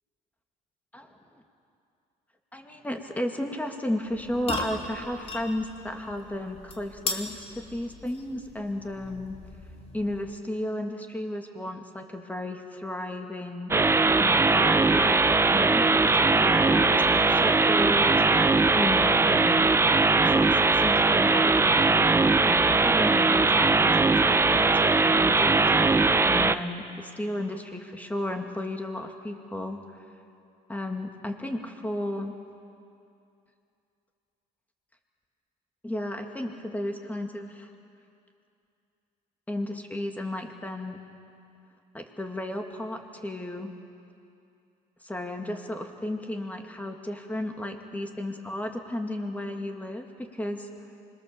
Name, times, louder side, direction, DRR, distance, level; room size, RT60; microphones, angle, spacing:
voice 1, 2.5-9.4 9.9-13.8 14.2-18.1 18.7-19.7 20.2-25.7 26.2-30.0 30.7-32.3 35.8-37.7 39.5-41.0 41.9-43.7 45.0-50.7, left 1 dB, 10° left, 4 dB, 2.2 m, -33 dB
sound 1, 4.1-10.5, left 2 dB, 35° left, 2.8 m, -38 dB
sound 2, 13.7-26.6, right 3 dB, 15° right, 0.6 m, -20 dB
25.0 x 22.0 x 7.3 m, 2.6 s
cardioid pair, 110°, 17 cm